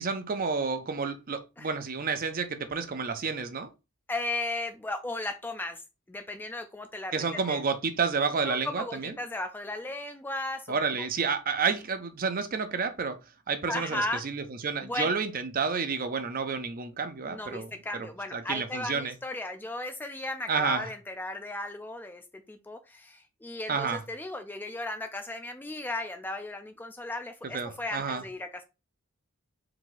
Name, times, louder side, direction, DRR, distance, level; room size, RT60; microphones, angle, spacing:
voice 1, 0.0-3.7 7.1-9.2 10.7-13.2 13.5-19.1 20.5-20.9 23.7-24.0 27.5-28.2, right 5 dB, 40° right, 0.6 m, -30 dB
voice 2, 4.1-5.8 6.1-7.1 7.5-7.6 8.4-10.8 13.7-14.3 14.8-15.2 17.3-28.6, left 2 dB, 10° left, 0.4 m, -35 dB
4.8 x 2.7 x 3.8 m
head